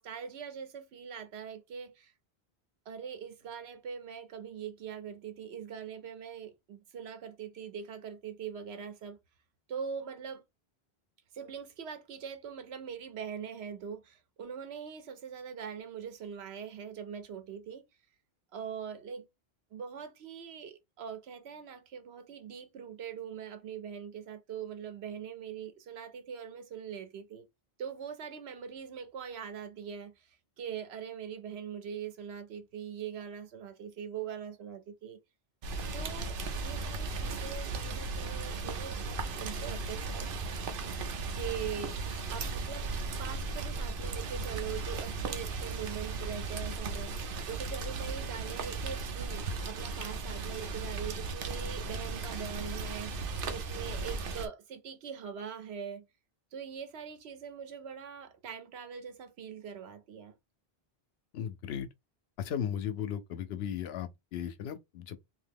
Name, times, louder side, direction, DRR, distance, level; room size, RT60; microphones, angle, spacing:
voice 1, 0.0-2.1 2.9-9.2 9.7-10.4 11.3-17.8 18.5-19.3 19.7-27.5 27.8-35.2 35.9-40.3 41.3-42.0 42.3-42.8 43.2-56.0 56.5-60.3, right 7 dB, 85° right, 1.0 m, -42 dB
Rain, 35.6-54.5, right 3 dB, 65° right, 0.8 m, -36 dB
voice 2, 61.3-61.9 62.4-65.2, left 9 dB, 80° left, 0.8 m, -36 dB
2.9 x 2.4 x 3.4 m
omnidirectional pair, 1.1 m